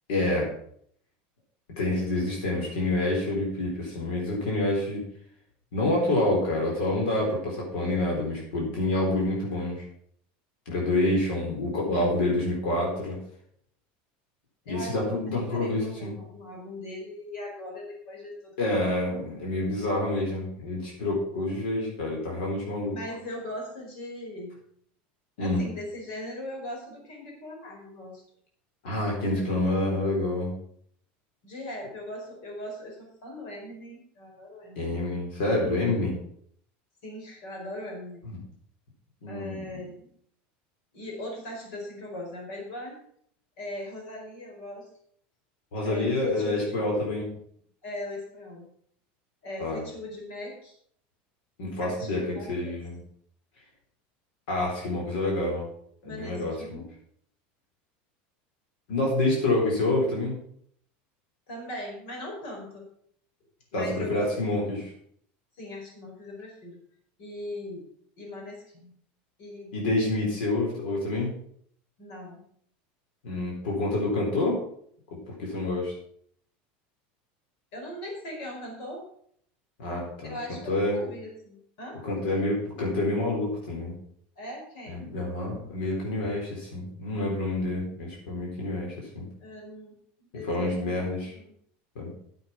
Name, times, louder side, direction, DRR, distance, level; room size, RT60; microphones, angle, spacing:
voice 1, 0.1-0.5 1.8-5.0 5.7-9.8 10.7-13.2 14.7-16.1 18.6-22.9 25.4-25.6 28.8-30.5 34.8-36.2 38.3-38.4 39.2-39.8 45.7-47.3 49.6-49.8 51.6-53.0 54.5-55.7 56.0-56.8 58.9-60.4 63.7-64.9 69.7-71.3 73.2-74.6 75.4-75.9 79.8-80.3 80.7-81.0 82.0-83.9 84.9-89.3 90.5-91.3 92.0-92.1, left 2 dB, 85° left, -2 dB, 4.2 m, -27 dB
voice 2, 14.7-18.9 22.9-24.6 25.4-28.2 29.3-29.6 31.4-34.9 37.0-38.3 39.3-40.1 40.9-43.0 43.6-44.9 45.8-46.8 47.8-48.7 49.4-50.7 51.8-52.8 56.0-56.9 61.5-62.9 63.7-64.3 65.5-66.8 67.2-67.9 68.2-69.0 69.4-69.7 72.0-72.4 77.7-79.0 80.2-82.0 84.4-85.1 89.4-91.5, left 1 dB, 60° left, 0 dB, 4.7 m, -40 dB
9.7 x 8.0 x 5.8 m, 0.65 s
supercardioid pair, 170°, 5 cm